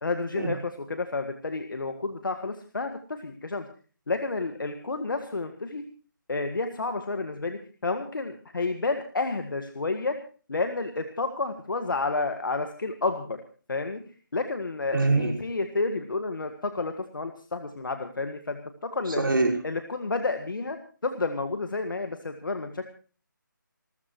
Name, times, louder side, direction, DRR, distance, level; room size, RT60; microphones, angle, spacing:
voice 1, 0.0-3.6 4.1-5.9 6.3-10.2 10.5-13.4 13.7-14.0 14.3-19.2 19.6-22.8, left 3 dB, 70° left, 6 dB, 1.7 m, -30 dB
voice 2, 14.9-15.3 19.2-19.6, right 3 dB, 80° right, 1 dB, 5.7 m, -23 dB
28.0 x 13.5 x 3.1 m, 0.38 s
figure-of-eight pair, 170°, 11 cm